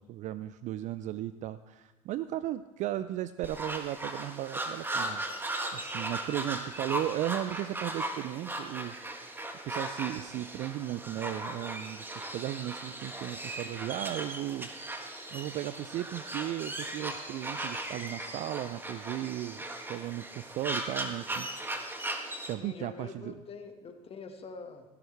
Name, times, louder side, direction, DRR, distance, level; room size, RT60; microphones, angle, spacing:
voice 1, 0.0-5.2 5.7-9.0 9.6-21.5 22.5-23.4, right 13 dB, 45° right, 14 dB, 0.4 m, -36 dB
sound 1, 3.4-22.5, right 1 dB, 10° right, 1.5 m, -37 dB
voice 2, 22.6-24.8, left 4 dB, 35° left, 5 dB, 1.7 m, -45 dB
16.5 x 12.0 x 3.4 m, 1.1 s
hypercardioid pair, 70°, 17 cm